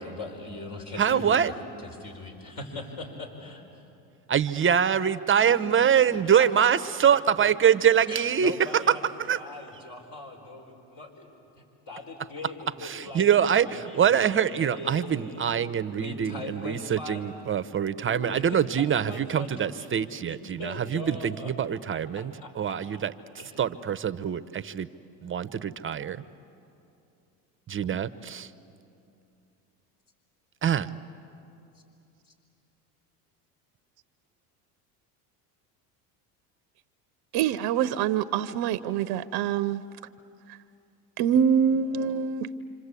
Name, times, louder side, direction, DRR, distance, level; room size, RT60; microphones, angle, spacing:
voice 1, 0.0-1.6 1.8-3.6 6.2-6.6 8.1-15.5 16.0-17.3 18.0-21.5 21.9-22.8 23.4-23.6, left 2 dB, 45° left, 4.6 m, -41 dB
voice 2, 1.0-1.5 4.3-9.4 12.8-23.1 23.6-24.9 25.2-26.2 27.7-28.5 30.6-30.9, right 8 dB, 25° right, 0.9 m, -24 dB
voice 3, 37.3-39.8 41.2-42.5, right 8 dB, 55° right, 0.8 m, -25 dB
26.5 x 26.5 x 8.4 m
supercardioid pair, 90°, 44 cm